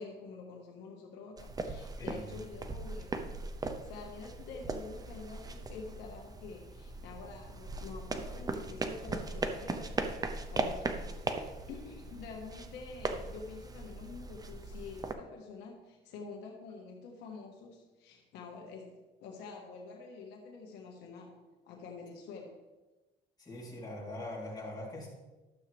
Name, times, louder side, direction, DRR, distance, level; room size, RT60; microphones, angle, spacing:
voice 1, 0.0-3.4 3.8-22.7, left 4 dB, 85° left, 1 dB, 1.6 m, -47 dB
sound 1, 1.4-15.1, right 3 dB, 20° right, 0.8 m, -39 dB
voice 2, 2.0-2.3 23.4-25.1, left 1 dB, 25° left, -5 dB, 3.7 m, -42 dB
12.5 x 7.4 x 3.5 m, 1.1 s
cardioid pair, 110°, 17 cm